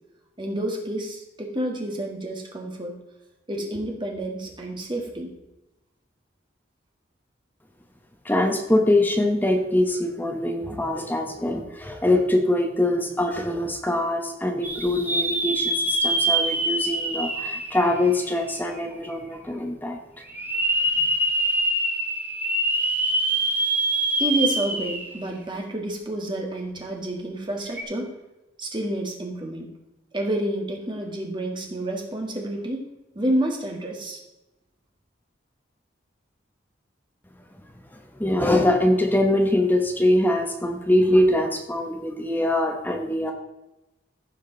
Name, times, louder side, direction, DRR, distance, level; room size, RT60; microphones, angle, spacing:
voice 1, 0.4-3.0 3.5-5.3 24.2-28.1 28.6-29.7 30.1-32.9 33.1-34.2, right 1 dB, 25° right, 1 dB, 1.7 m, -29 dB
voice 2, 8.2-20.0 38.1-43.3, left 1 dB, 10° left, 3 dB, 1.0 m, -23 dB
sound 1, 14.6-18.6 19.1-19.2 20.3-25.2 25.6-25.7 27.7-27.8, right 1 dB, 10° right, 1.2 m, -25 dB
15.0 x 5.2 x 3.9 m, 0.97 s
head